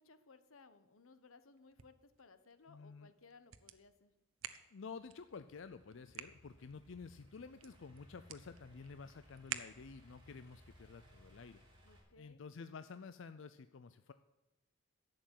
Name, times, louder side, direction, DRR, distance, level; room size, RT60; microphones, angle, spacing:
voice 1, 0.0-4.1 11.8-12.4, left 4 dB, 85° left, 12 dB, 1.0 m, -62 dB
sound 1, 1.5-10.2, right 10 dB, 90° right, 0.9 m, -52 dB
voice 2, 2.7-3.1 4.7-11.6 12.2-14.1, left 5 dB, 60° left, 12 dB, 0.5 m, -51 dB
Idling / Accelerating revving vroom, 4.9-12.0, left 1 dB, 25° right, 4.0 m, -63 dB
11.5 x 7.8 x 8.9 m, 1.1 s
head